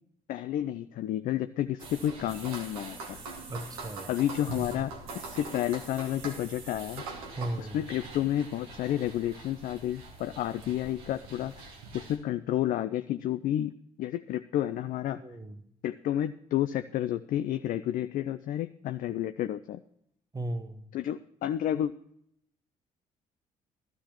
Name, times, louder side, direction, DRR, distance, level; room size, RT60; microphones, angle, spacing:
voice 1, 0.3-3.2 4.1-7.0 7.6-11.5 11.9-15.2 15.8-19.8 20.9-21.9, left 12 dB, 45° left, 11 dB, 0.4 m, -31 dB
sound 1, 1.8-12.2, right 3 dB, 75° right, 1.4 m, -43 dB
voice 2, 3.5-4.1 7.4-7.8 15.2-15.7 20.3-20.9, right 1 dB, 20° right, 11 dB, 1.0 m, -36 dB
16.0 x 13.0 x 2.9 m, 0.73 s
figure-of-eight pair, 45°, 19 cm